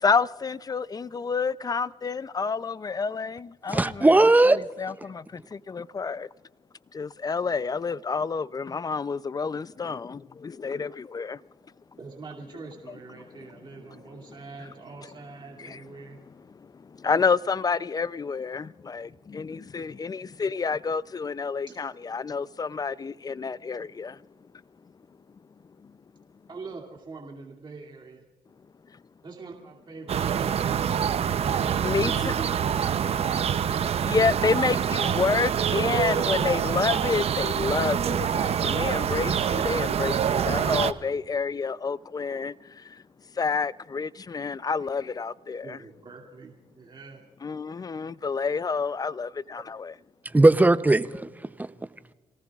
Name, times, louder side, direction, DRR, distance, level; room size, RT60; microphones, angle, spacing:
voice 1, 0.0-4.1 4.5-6.3 6.9-11.4 13.9-14.0 15.6-15.8 16.5-24.2 25.8-25.9 31.8-32.3 34.0-43.0 43.4-45.8 47.4-49.3 49.7-49.9, left 5 dB, 30° left, 0.5 m, -29 dB
voice 2, 3.7-4.6 50.3-51.3 51.6-51.7, right 2 dB, 15° right, 0.7 m, -18 dB
voice 3, 12.0-16.2 21.7-21.8 26.5-28.2 29.2-31.4 31.8-33.1 38.3-38.4 45.6-47.2, right 4 dB, 40° right, 2.6 m, -43 dB
sound 1, 30.1-40.9, right 8 dB, 55° right, 0.7 m, -26 dB
28.5 x 18.5 x 2.4 m
cardioid pair, 70°, 12 cm